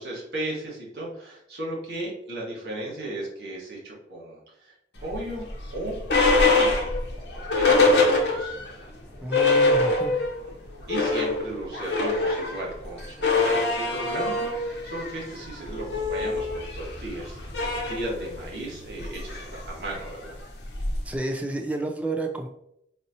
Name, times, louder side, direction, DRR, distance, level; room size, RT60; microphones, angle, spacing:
voice 1, 0.0-4.7 5.0-5.5 5.7-6.9 7.2-8.9 10.4-10.5 10.9-20.4, right 1 dB, 70° right, -4 dB, 1.3 m, -36 dB
sound 1, 5.1-8.7 9.0-9.1 9.3-10.4 10.7-21.2, left 3 dB, 75° left, 0.8 m, -24 dB
voice 2, 9.2-10.1 21.1-22.5, right 2 dB, 10° right, 3 dB, 0.3 m, -30 dB
4.1 x 2.8 x 2.6 m, 0.78 s
head